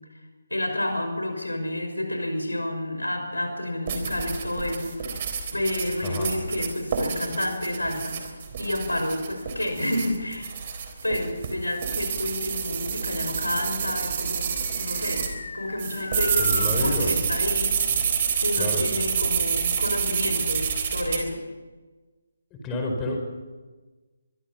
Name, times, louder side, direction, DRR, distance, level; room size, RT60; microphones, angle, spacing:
voice 1, 0.5-10.5 11.0-14.5 14.8-15.3 15.5-21.4, left 1 dB, 80° left, 5 dB, 6.1 m, -30 dB
sound 1, 3.9-15.3 15.8-21.2, right 6 dB, 35° right, 3.8 m, -28 dB
sound 2, 13.9-17.4, left 4 dB, 50° left, 4.7 m, -36 dB
voice 2, 16.4-17.1 18.6-18.8 22.6-23.3, left 1 dB, 15° left, 1 dB, 4.8 m, -28 dB
24.0 x 23.5 x 6.0 m, 1.3 s
figure-of-eight pair, 145°, 0 cm